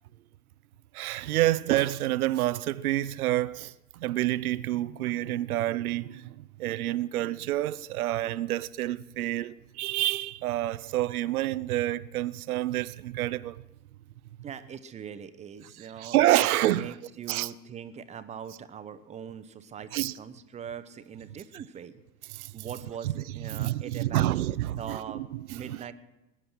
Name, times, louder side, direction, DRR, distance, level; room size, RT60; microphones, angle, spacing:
voice 1, 0.9-13.6 15.8-16.9 17.3-17.5 19.9-20.1 22.3-22.7 23.0-25.9, right 15 dB, 60° right, 0.6 m, -28 dB
voice 2, 14.4-16.2 16.6-22.0 22.5-25.2 25.5-25.9, right 8 dB, 15° right, 0.6 m, -41 dB
20.5 x 10.0 x 6.2 m
figure-of-eight pair, 90°, 49 cm